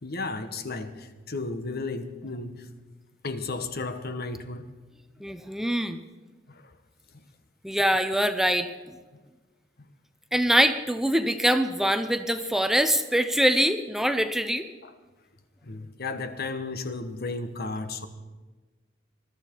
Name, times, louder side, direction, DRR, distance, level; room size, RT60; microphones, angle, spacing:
voice 1, 0.0-2.7 3.2-4.7 6.5-6.7 7.1-7.2 14.8-15.0 15.6-18.1, left 3 dB, 55° left, 1.2 m, -34 dB
voice 2, 5.2-6.0 7.6-8.7 10.3-14.7, equal, ahead, 0.6 m, -24 dB
21.0 x 12.5 x 4.6 m
head